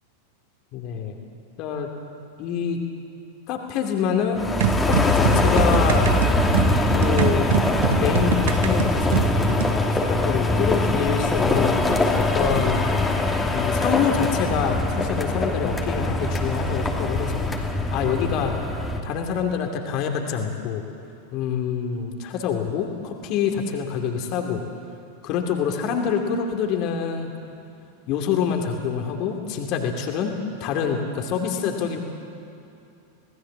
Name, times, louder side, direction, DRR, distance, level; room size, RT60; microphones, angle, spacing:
voice 1, 0.7-1.2 1.6-1.9 2.4-2.8 3.5-4.5 4.8-6.1 6.9-7.5 8.0-11.8 12.1-12.9 13.5-17.5 17.9-18.5 19.0-20.8 21.3-24.6 25.2-27.3 28.1-30.3 30.6-32.0, left 7 dB, 40° left, 3 dB, 2.7 m, -26 dB
sound 1, 4.4-19.0, left 2 dB, 10° left, 2.6 m, -22 dB
sound 2, 4.6-9.8, right 9 dB, 55° right, 1.2 m, -25 dB
26.5 x 19.0 x 7.3 m, 2.7 s
figure-of-eight pair, 90°, 0 cm